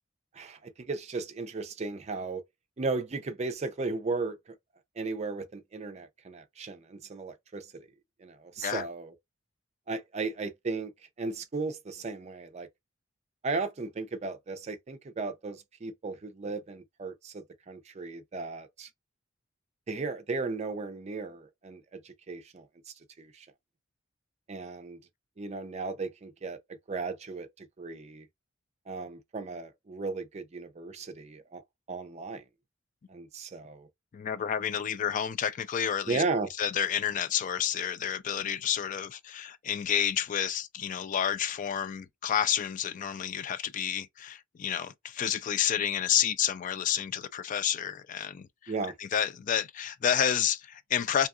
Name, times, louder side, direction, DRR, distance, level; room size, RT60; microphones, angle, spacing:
voice 1, 0.3-2.4 2.8-4.5 5.0-7.7 8.2-9.1 9.9-10.9 11.2-12.7 13.4-18.9 19.9-23.5 24.5-25.0 25.4-28.3 28.9-31.6 31.9-32.4 33.1-33.9 36.1-36.5 48.7-48.9, right 3 dB, 35° right, 0.5 m, -35 dB
voice 2, 34.1-36.2 36.6-48.7 49.0-51.3, left 9 dB, 40° left, 0.3 m, -30 dB
2.7 x 2.3 x 2.4 m
head